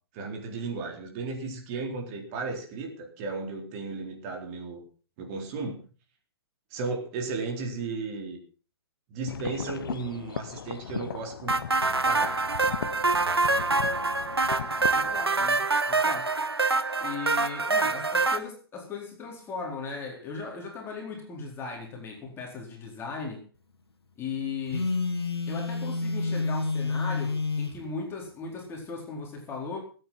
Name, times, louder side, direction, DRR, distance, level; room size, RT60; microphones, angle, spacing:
voice 1, 0.1-4.8 5.2-5.8 6.7-8.4 9.1-11.6 12.0-12.4, right 4 dB, 35° right, 3 dB, 3.9 m, -34 dB
sound 1, 9.3-15.2, left 7 dB, 60° left, 0.9 m, -37 dB
sound 2, 11.5-18.4, right 3 dB, 85° right, 1.5 m, -25 dB
voice 2, 14.9-16.3 17.0-23.4 24.2-24.9 25.5-29.8, left 4 dB, 20° left, 0 dB, 4.2 m, -37 dB
Telephone, 24.7-27.8, left 3 dB, 80° left, 2.1 m, -29 dB
19.5 x 9.1 x 5.8 m, 0.38 s
figure-of-eight pair, 120°, 13 cm